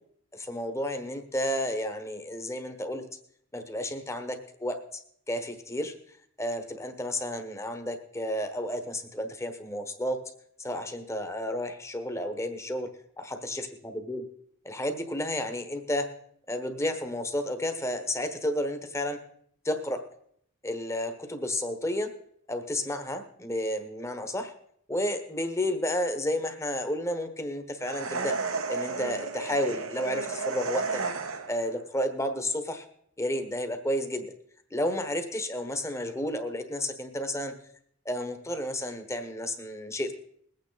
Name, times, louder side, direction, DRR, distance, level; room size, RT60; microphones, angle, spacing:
voice 1, 0.3-3.0 3.5-5.0 5.3-5.9 6.4-10.2 10.6-12.9 13.2-14.2 14.6-16.1 16.5-19.2 19.6-20.0 20.6-22.1 22.5-24.5 24.9-28.4 28.7-31.0 31.5-32.9 33.2-34.3 34.7-37.5 38.0-40.1, left 1 dB, 15° left, 7 dB, 1.1 m, -31 dB
sound 1, 27.8-31.7, right 4 dB, 85° right, 1.2 m, -32 dB
21.0 x 8.8 x 4.0 m, 0.68 s
head